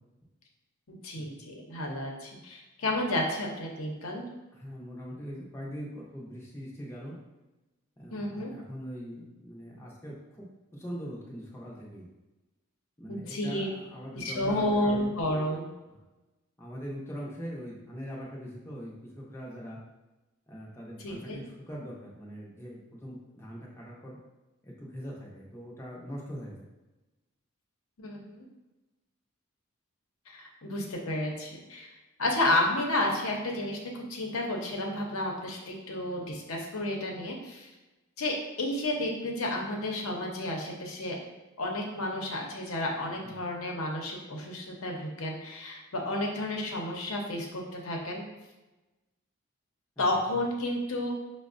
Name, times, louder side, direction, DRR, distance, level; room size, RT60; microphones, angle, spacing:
voice 1, 0.9-4.2 8.1-8.5 13.1-13.7 14.1-15.7 21.0-21.4 28.0-28.5 30.3-31.9 32.2-37.7 38.2-41.2 41.6-48.2 50.0-51.1, left 1 dB, 85° left, 0 dB, 0.7 m, -31 dB
voice 2, 4.5-7.2 8.0-10.4 10.7-12.0 13.0-15.1 15.9-16.0 16.6-19.8 20.5-24.2 24.6-26.6 43.2-43.4 50.0-50.1 50.3-50.4, equal, 10° left, -5 dB, 0.5 m, -42 dB
5.6 x 2.0 x 2.5 m, 1.1 s
head